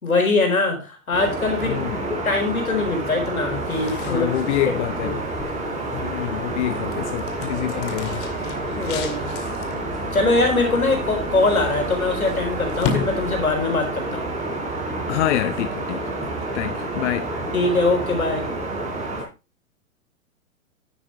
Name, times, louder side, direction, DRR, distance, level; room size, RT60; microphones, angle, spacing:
voice 1, 0.0-4.3 5.0-5.2 8.7-9.3 10.1-14.3 17.5-18.4, left 3 dB, 90° left, 4.3 m, -22 dB
sound 1, 1.1-19.2, right 2 dB, 15° right, 3.7 m, -29 dB
voice 2, 1.6-2.1 4.0-5.2 5.9-8.3 15.1-17.3, left 13 dB, 55° left, 0.9 m, -27 dB
sound 2, 3.5-13.8, left 6 dB, 35° left, 2.1 m, -35 dB
10.5 x 8.8 x 3.1 m
hypercardioid pair, 110°, 41 cm